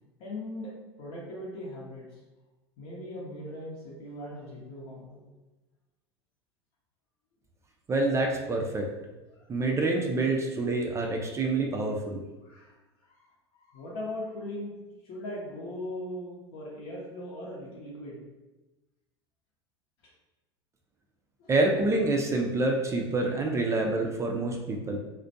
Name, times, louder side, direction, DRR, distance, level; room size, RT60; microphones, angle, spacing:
voice 1, 0.2-0.7 1.0-2.0 2.8-5.2 12.5-12.7 13.7-14.7 15.1-18.2 21.4-21.5, left 1 dB, 65° left, -4 dB, 0.8 m, -39 dB
voice 2, 7.9-8.9 9.5-12.2 21.5-25.0, right 2 dB, 20° right, 1 dB, 0.3 m, -27 dB
2.4 x 2.1 x 2.6 m, 1.1 s
hypercardioid pair, 85°, 14 cm